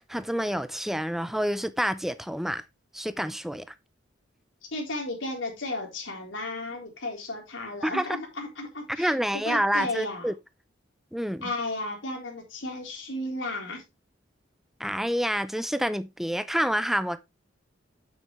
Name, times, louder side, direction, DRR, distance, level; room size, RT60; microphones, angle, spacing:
voice 1, 0.0-2.6 2.9-3.7 7.8-8.1 9.0-10.3 11.1-11.5 14.8-17.2, equal, ahead, 0.5 m, -28 dB
voice 2, 4.7-10.3 11.4-13.8, left 2 dB, 80° left, 3.8 m, -34 dB
9.1 x 7.3 x 3.2 m
head